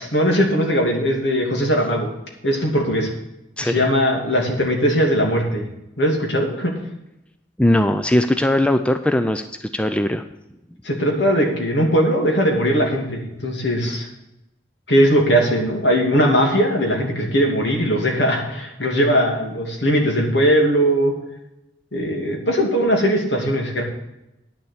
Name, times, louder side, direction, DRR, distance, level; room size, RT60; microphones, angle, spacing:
voice 1, 0.0-2.1 2.4-3.1 3.6-5.6 6.0-6.7 10.8-14.0 14.9-21.1 21.9-23.8, equal, 65° left, 1 dB, 2.7 m, -19 dB
voice 2, 3.6-3.9 7.6-10.2, left 1 dB, 5° left, 8 dB, 0.4 m, -19 dB
10.0 x 7.0 x 8.0 m, 0.91 s
head